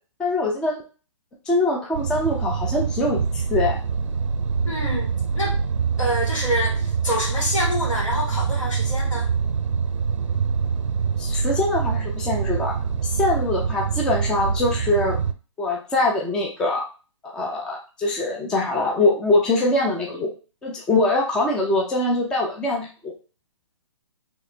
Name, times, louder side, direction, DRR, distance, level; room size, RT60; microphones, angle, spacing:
voice 1, 0.2-0.8 1.5-3.8 11.2-12.8 13.1-15.2 15.6-16.8 17.3-20.3 20.6-23.1, left 2 dB, 5° left, -1 dB, 0.3 m, -23 dB
sound 1, 1.9-15.3, right 6 dB, 75° right, 0.4 m, -25 dB
voice 2, 4.7-5.5 6.0-9.3, equal, 75° left, -1 dB, 1.8 m, -27 dB
4.0 x 2.9 x 2.6 m, 0.35 s
hypercardioid pair, 140°, 16 cm